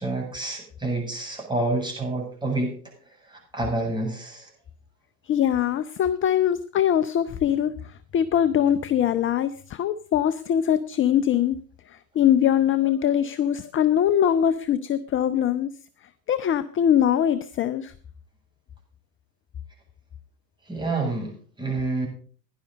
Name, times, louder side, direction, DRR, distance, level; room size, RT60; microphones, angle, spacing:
voice 1, 0.0-2.7 3.2-4.5 20.7-22.1, right 2 dB, 10° right, -1 dB, 7.9 m, -28 dB
voice 2, 5.3-7.7 8.1-11.6 11.9-15.7 16.3-17.9, left 10 dB, 25° left, 14 dB, 0.7 m, -22 dB
17.0 x 11.0 x 4.1 m, 0.43 s
hypercardioid pair, 95°, 50 cm